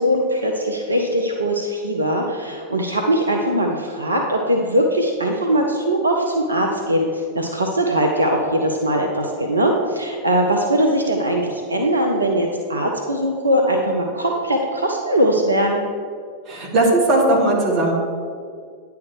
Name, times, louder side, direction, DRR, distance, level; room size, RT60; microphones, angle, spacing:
voice 1, 0.0-7.1 7.3-15.8, right 1 dB, 80° right, 1 dB, 0.6 m, -20 dB
voice 2, 16.5-17.9, right 1 dB, 35° right, -2 dB, 1.8 m, -17 dB
9.6 x 3.5 x 6.2 m, 2.1 s
figure-of-eight pair, 90°, 0 cm